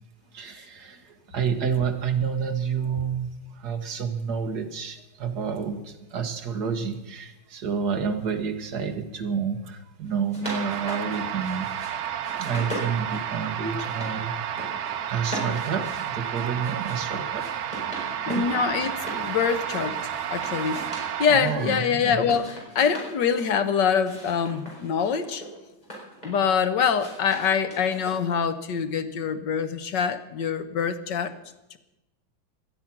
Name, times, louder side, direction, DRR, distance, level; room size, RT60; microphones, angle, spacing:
voice 1, 0.3-11.7 12.4-14.7 15.0-17.5 17.9-18.4 21.3-22.3, right 6 dB, 50° right, 1.9 m, -29 dB
sound 1, 10.1-11.9 12.2-14.1 14.4-14.9 15.2-19.2 19.6-21.8 22.2-23.5 24.0-26.5 26.9-28.4, equal, 20° left, 5.6 m, -39 dB
sound 2, 10.4-21.3, right 9 dB, 75° right, 1.7 m, -31 dB
voice 2, 18.3-20.0 20.3-25.4 26.2-31.3, left 6 dB, 65° left, 1.6 m, -25 dB
18.5 x 12.5 x 5.9 m
omnidirectional pair, 2.2 m